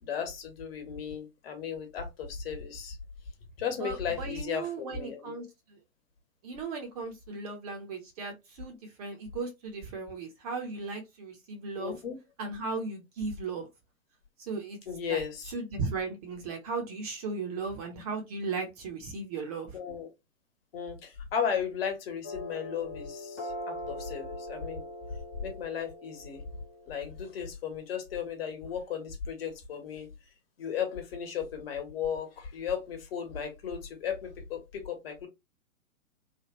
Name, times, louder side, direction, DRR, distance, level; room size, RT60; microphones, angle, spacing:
voice 1, 0.0-3.0 3.6-5.5 11.8-12.2 14.9-15.5 19.7-20.1 20.7-24.8 25.4-26.4 26.9-30.1 30.6-35.3, left 7 dB, 45° left, 1.2 m, -35 dB
voice 2, 3.8-5.8 6.4-12.0 12.4-13.7 14.4-14.8 15.1-19.8, right 4 dB, 30° right, 0.7 m, -36 dB
sound 1, 22.2-27.3, left 1 dB, 10° left, 0.3 m, -42 dB
3.3 x 2.2 x 2.9 m
figure-of-eight pair, 115°, 41 cm